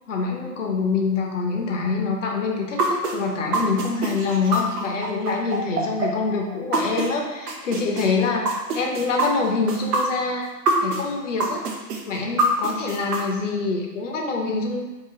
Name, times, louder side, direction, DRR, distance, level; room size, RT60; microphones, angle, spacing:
voice 1, 0.1-8.5 8.7-10.5 10.8-11.7 12.1-14.8, left 4 dB, 50° left, 1 dB, 0.5 m, -25 dB
sound 1, 2.8-7.1 7.5-11.0 11.4-13.2, right 3 dB, 65° right, 0.7 m, -24 dB
2.7 x 2.7 x 3.0 m, 1.1 s
hypercardioid pair, 180°, 49 cm